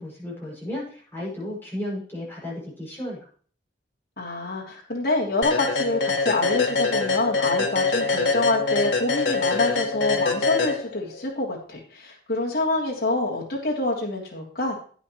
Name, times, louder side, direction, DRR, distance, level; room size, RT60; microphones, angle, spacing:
voice 1, 0.0-3.2, left 1 dB, 10° left, -6 dB, 6.3 m, -34 dB
voice 2, 4.2-14.8, left 2 dB, 55° left, -3 dB, 3.2 m, -26 dB
sound 1, 5.4-11.2, left 4 dB, 85° left, 1.6 m, -24 dB
12.0 x 9.4 x 3.1 m, 0.44 s
head